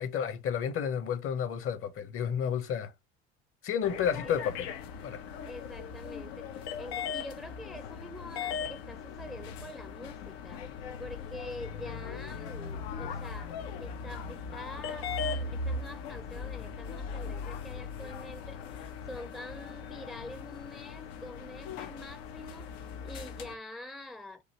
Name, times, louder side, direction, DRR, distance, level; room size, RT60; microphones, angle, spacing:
voice 1, 0.0-2.9 3.6-4.7 5.0-5.2, left 8 dB, 45° left, 1.1 m, -31 dB
sound 1, 3.8-23.6, left 5 dB, 75° left, 0.9 m, -39 dB
voice 2, 5.4-10.7 11.0-22.7 23.0-24.4, left 1 dB, ahead, 0.6 m, -46 dB
5.0 x 2.6 x 3.0 m
hypercardioid pair, 75°, 31 cm